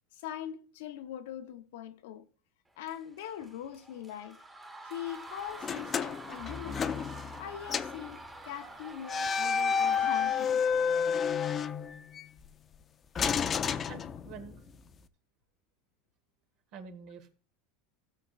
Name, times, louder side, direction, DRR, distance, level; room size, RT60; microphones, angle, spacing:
voice 1, 0.1-2.3 2.8-4.4 4.8-6.9 7.4-10.6, left 10 dB, 80° left, 0.8 m, -42 dB
sound 1, 2.8-11.1, right 2 dB, 10° right, 1.2 m, -48 dB
sound 2, 5.6-7.4 7.7-8.0 9.0-12.3 13.1-14.6, left 6 dB, 25° left, 0.5 m, -30 dB
voice 2, 13.9-14.7 16.7-17.3, right 5 dB, 50° right, 1.5 m, -47 dB
16.5 x 6.5 x 2.4 m
supercardioid pair, 140°, 0 cm